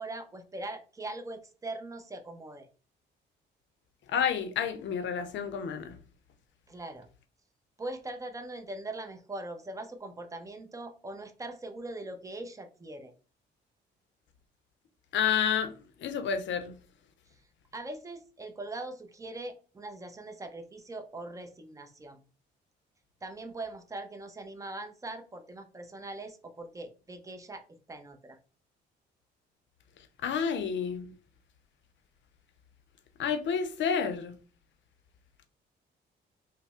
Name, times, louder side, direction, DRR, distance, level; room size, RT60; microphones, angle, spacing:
voice 1, 0.0-2.7 6.7-7.1 7.8-13.1 17.7-22.2 23.2-28.4, right 2 dB, 15° right, 0.6 m, -41 dB
voice 2, 4.1-6.0 15.1-15.7 16.0-16.8 30.2-31.1 33.2-34.4, left 7 dB, 65° left, 0.6 m, -30 dB
3.3 x 2.1 x 4.2 m
cardioid pair, 90°, 20 cm